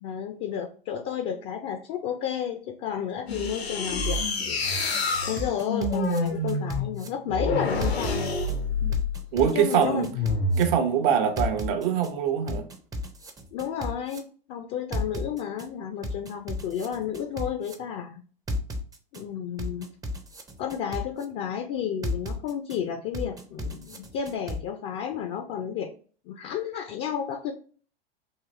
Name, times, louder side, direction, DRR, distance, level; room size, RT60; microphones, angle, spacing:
voice 1, 0.0-8.4 9.4-10.1 13.5-18.2 19.1-19.9 20.6-25.9 26.3-27.5, left 8 dB, 40° left, 0.5 m, -32 dB
sound 1, 3.3-9.2 10.1-10.8, left 2 dB, 90° left, 1.1 m, -28 dB
sound 2, 5.4-7.1 7.8-8.5 8.9-10.6 11.4-12.1 12.5-14.2 14.9-15.7 16.0-17.7 18.5-19.2 19.6-21.2 22.0-22.8 23.1-24.6, left 1 dB, 10° right, 0.5 m, -33 dB
voice 2, 9.3-10.1 10.6-12.7, right 8 dB, 60° right, 0.7 m, -23 dB
3.9 x 2.5 x 3.0 m
hypercardioid pair, 95°, 30 cm